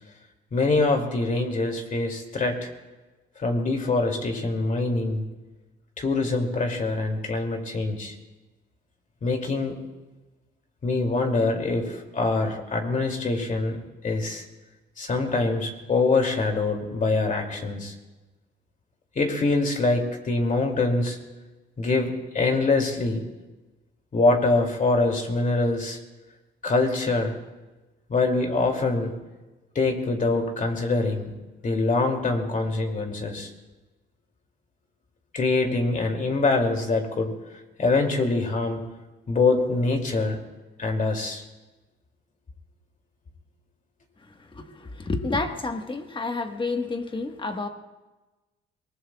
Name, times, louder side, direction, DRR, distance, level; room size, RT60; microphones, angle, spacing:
voice 1, 0.5-2.7 3.4-5.2 6.0-8.1 9.2-9.8 10.8-14.4 15.0-17.9 19.1-21.2 21.8-23.2 24.1-26.0 26.6-27.4 28.1-29.1 29.7-31.3 31.6-33.5 35.3-37.3 37.8-38.8 39.3-40.4 40.8-41.4, left 3 dB, 40° left, 2 dB, 2.6 m, -24 dB
voice 2, 44.4-47.7, left 3 dB, 25° left, 6 dB, 1.4 m, -30 dB
23.0 x 19.5 x 2.4 m, 1.1 s
cardioid pair, 90°, 20 cm